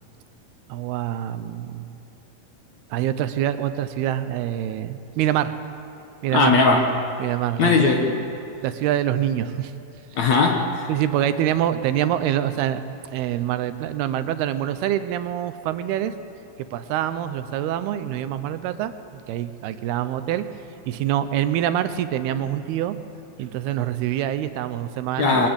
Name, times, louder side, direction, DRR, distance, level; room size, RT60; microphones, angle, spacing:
voice 1, 0.7-2.0 2.9-5.5 6.2-6.5 7.2-7.9 8.6-9.7 10.9-12.8 13.1-16.1 16.6-20.5 20.9-23.0 23.4-25.5, right 11 dB, 80° right, 11 dB, 2.8 m, -25 dB
voice 2, 6.3-6.9 7.6-8.3 10.2-10.9 25.2-25.5, left 4 dB, 55° left, 3 dB, 2.2 m, -19 dB
23.0 x 20.0 x 8.9 m, 2.7 s
omnidirectional pair, 4.5 m